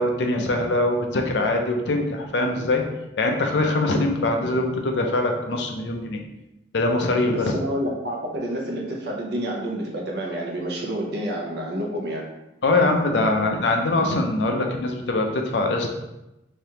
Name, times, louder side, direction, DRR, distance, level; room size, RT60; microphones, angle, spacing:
voice 1, 0.0-2.8 3.2-6.2 6.7-7.5 12.6-15.9, left 2 dB, 65° left, 3 dB, 0.5 m, -22 dB
voice 2, 7.3-12.2, equal, 60° right, -1 dB, 0.8 m, -29 dB
3.6 x 3.4 x 2.9 m, 0.94 s
head